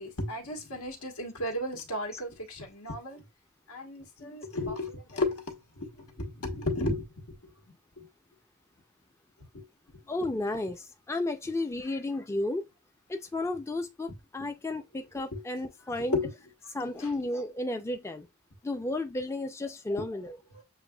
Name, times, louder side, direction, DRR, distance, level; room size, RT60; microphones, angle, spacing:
voice 1, 0.0-3.2 3.7-5.9 6.2-7.1 7.4-7.5 8.0-8.1 9.5-9.6 15.3-15.4 16.0-16.3 17.0-17.1 20.0-20.1 20.5-20.6, left 2 dB, 90° left, 1.4 m, -34 dB
voice 2, 10.1-12.6 13.1-16.2 16.7-18.3 18.6-20.4, left 2 dB, 10° left, 0.3 m, -33 dB
6.9 x 2.5 x 2.2 m
head